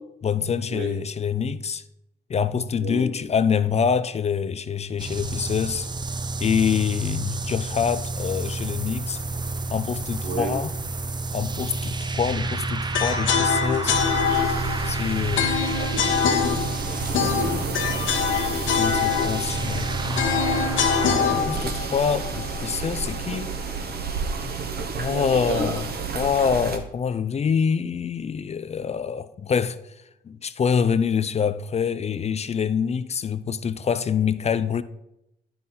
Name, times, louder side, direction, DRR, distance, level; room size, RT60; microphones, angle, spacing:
voice 1, 0.2-1.8 2.3-5.9 6.4-9.2 9.7-10.7 11.3-14.0 14.8-15.6 18.8-20.5 21.3-23.5 24.9-25.9 26.1-29.8 30.2-34.8, left 7 dB, 35° left, 0.4 m, -25 dB
sound 1, 5.0-21.7, right 3 dB, 20° right, 0.5 m, -30 dB
sound 2, 12.9-23.0, left 7 dB, 75° left, 1.1 m, -25 dB
sound 3, 13.9-26.8, right 5 dB, 50° right, 1.0 m, -32 dB
voice 2, 15.6-16.0 17.1-17.8 24.9-25.9, right 3 dB, 80° right, 1.6 m, -32 dB
9.2 x 5.9 x 3.8 m
cardioid pair, 90°, 20 cm